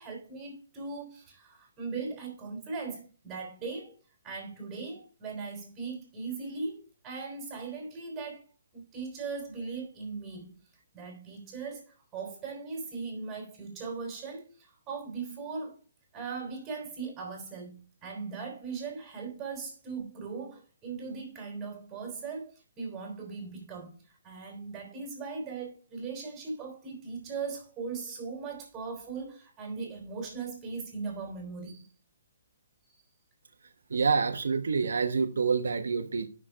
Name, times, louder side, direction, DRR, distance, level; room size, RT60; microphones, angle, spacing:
voice 1, 0.0-4.0 4.2-6.8 7.0-8.4 8.7-10.5 10.9-14.5 14.9-15.8 16.1-31.9, right 4 dB, 15° right, 3.8 m, -39 dB
voice 2, 33.9-36.3, right 5 dB, 75° right, 1.1 m, -27 dB
8.7 x 6.2 x 5.0 m
hypercardioid pair, 155°, 0 cm